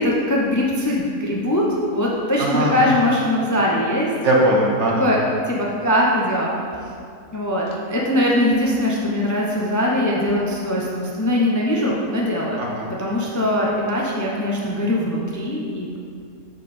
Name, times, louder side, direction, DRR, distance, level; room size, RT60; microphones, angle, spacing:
voice 1, 0.0-4.1 5.0-5.2 5.5-6.5 7.3-12.6 13.0-16.0, left 1 dB, 25° left, -3 dB, 0.4 m, -21 dB
voice 2, 2.4-2.9 4.2-5.1 12.6-12.9, right 1 dB, 55° right, -3 dB, 1.2 m, -20 dB
7.2 x 5.5 x 4.2 m, 2.3 s
omnidirectional pair, 1.5 m